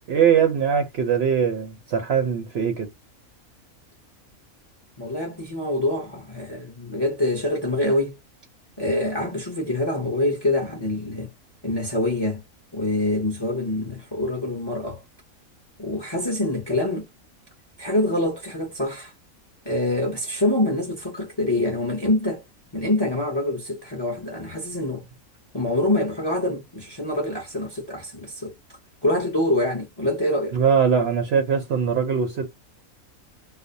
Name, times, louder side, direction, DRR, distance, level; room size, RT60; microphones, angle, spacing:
voice 1, 0.1-2.9 30.5-32.5, right 7 dB, 65° right, 0.7 m, -21 dB
voice 2, 5.0-8.2 8.8-11.3 11.6-12.4 12.7-15.0 15.8-17.1 17.8-19.1 19.6-22.4 22.7-25.0 25.5-28.5 29.0-30.6, left 1 dB, 30° left, 0.5 m, -25 dB
2.5 x 2.0 x 2.6 m
omnidirectional pair, 1.5 m